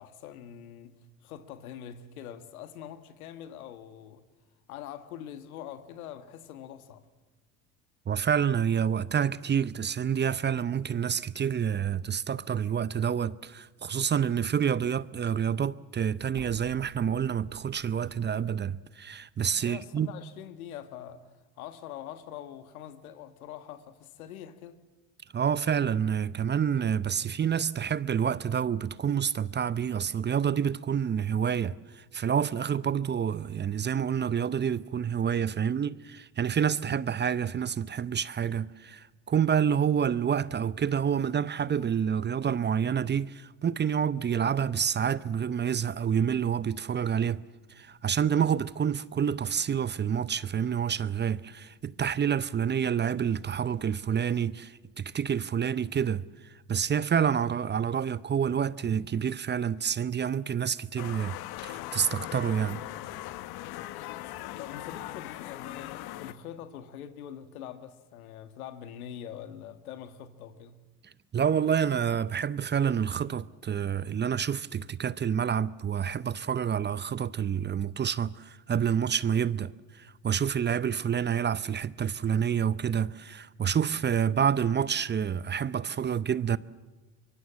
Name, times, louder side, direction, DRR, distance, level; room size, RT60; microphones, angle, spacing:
voice 1, 0.0-4.2 4.7-7.0 19.6-21.3 21.6-24.8 64.6-70.8, left 10 dB, 85° left, 1.7 m, -44 dB
voice 2, 8.1-20.1 25.3-47.4 47.7-61.3 61.6-62.8 71.3-86.6, right 8 dB, 25° right, 0.7 m, -28 dB
sound 1, 16.3-18.4, right 12 dB, 60° right, 1.4 m, -49 dB
sound 2, 61.0-66.3, left 15 dB, 60° left, 1.2 m, -40 dB
24.5 x 23.0 x 7.4 m
hypercardioid pair, 75°, 42 cm